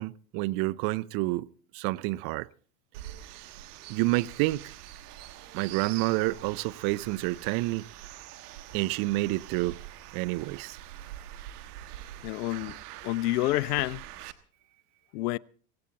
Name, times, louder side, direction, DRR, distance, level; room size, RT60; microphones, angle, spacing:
voice 1, 0.0-1.5 1.7-2.5 3.9-4.7 5.5-7.8 8.7-9.8 10.1-10.8, right 20 dB, 50° right, 0.7 m, -28 dB
sound 1, 2.9-14.3, right 13 dB, 70° right, 1.5 m, -45 dB
sound 2, 5.1-10.6, right 10 dB, 85° right, 2.2 m, -56 dB
voice 2, 12.2-12.8 13.0-14.0 15.1-15.4, left 18 dB, 70° left, 0.7 m, -28 dB
17.5 x 16.5 x 4.2 m
hypercardioid pair, 90°, 48 cm